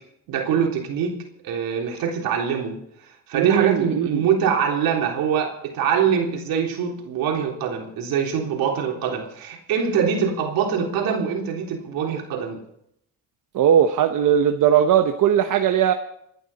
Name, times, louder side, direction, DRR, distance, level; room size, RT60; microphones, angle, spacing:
voice 1, 0.3-12.6, right 7 dB, 80° right, 1 dB, 3.7 m, -24 dB
voice 2, 3.3-4.2 13.5-15.9, right 9 dB, 60° right, 6 dB, 1.1 m, -19 dB
27.5 x 10.5 x 4.3 m, 0.74 s
cardioid pair, 100°, 35 cm